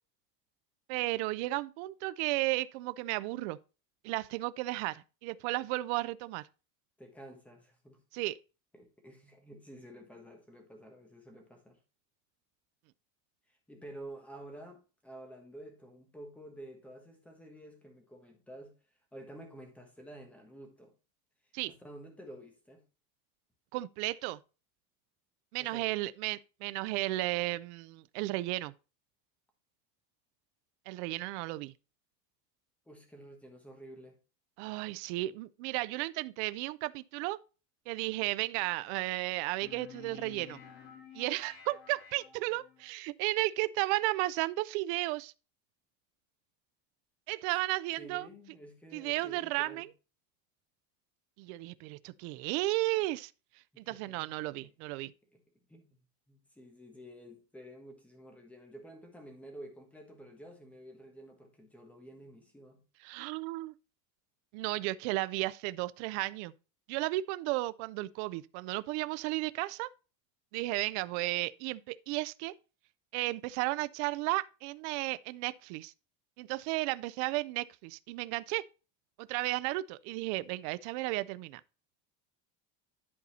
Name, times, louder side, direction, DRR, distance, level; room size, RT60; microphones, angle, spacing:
voice 1, 0.9-3.6 4.0-6.5 8.1-8.4 21.5-21.7 23.7-24.4 25.5-28.7 30.9-31.7 34.6-37.4 37.9-40.6 41.1-45.3 47.3-48.3 48.9-49.9 51.4-53.3 53.8-55.1 63.0-63.7 64.5-66.5 66.9-69.9 70.5-72.5 73.1-75.9 76.4-78.6 79.2-81.6, right 19 dB, 55° right, 0.5 m, -34 dB
voice 2, 7.0-8.0 8.7-11.8 13.5-18.7 19.1-20.9 21.7-22.8 25.6-25.9 32.9-34.2 47.9-49.9 53.7-54.3 54.6-54.7 55.3-55.4 55.7-56.0 56.3-62.8, right 1 dB, 5° left, 1.2 m, -50 dB
sound 1, 39.6-42.9, left 7 dB, 65° left, 2.3 m, -52 dB
11.0 x 4.1 x 4.1 m
cardioid pair, 180°, 40 cm